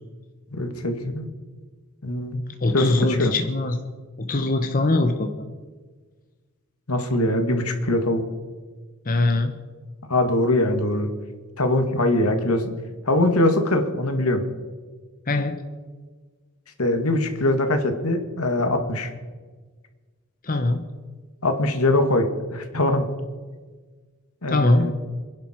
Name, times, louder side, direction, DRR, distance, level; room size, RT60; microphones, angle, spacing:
voice 1, 0.5-1.3 2.0-2.4 2.7-3.3 6.9-8.2 10.1-11.1 11.6-12.8 13.1-14.4 16.8-19.1 21.4-23.1 24.4-24.9, left 1 dB, 85° left, 6 dB, 2.1 m, -22 dB
voice 2, 2.6-3.8 4.2-5.5 9.1-9.6 15.3-15.6 20.4-20.9 24.5-24.9, left 2 dB, 40° left, 6 dB, 1.0 m, -22 dB
28.0 x 10.5 x 4.5 m, 1.4 s
head